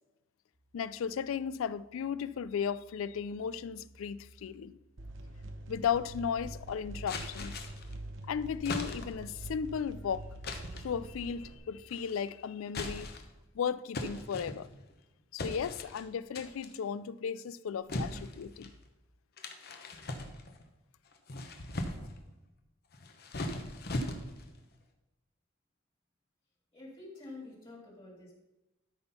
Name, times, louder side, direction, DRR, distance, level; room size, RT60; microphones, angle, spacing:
sound 1, 0.5-5.2 8.5-13.2 15.2-15.3, right 2 dB, 50° right, 1.4 m, -59 dB
voice 1, 0.7-4.8 5.7-7.6 8.3-10.3 10.8-13.1 13.5-14.7 15.3-18.7, left 7 dB, 75° left, 0.4 m, -35 dB
sound 2, 5.0-11.6, right 1 dB, 65° right, 1.0 m, -45 dB
sound 3, 7.1-7.9 8.7-9.3 10.4-10.9 11.9-12.3 12.7-13.4 13.9-14.9 15.4-16.0 16.4-16.8 17.9-18.8 19.4-20.6 21.1-22.2 22.9-24.5, left 1 dB, 50° left, 1.0 m, -39 dB
voice 2, 26.7-28.4, left 2 dB, 25° left, 2.2 m, -48 dB
13.0 x 4.4 x 5.5 m
head